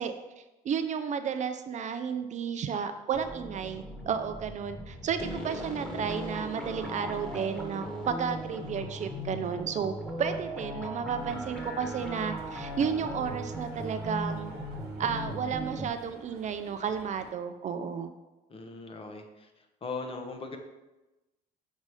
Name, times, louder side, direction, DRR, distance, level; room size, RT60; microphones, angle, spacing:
voice 1, 0.0-9.9 10.2-14.5 15.0-18.1, right 7 dB, 45° right, 8 dB, 0.5 m, -32 dB
sound 1, 3.1-15.9, equal, 5° left, 1.4 m, -38 dB
sound 2, 11.2-17.3, right 5 dB, 75° right, 1.0 m, -51 dB
voice 2, 18.5-20.6, left 3 dB, 35° left, 5 dB, 0.9 m, -39 dB
6.2 x 4.1 x 4.8 m, 1.1 s
cardioid pair, 110°, 17 cm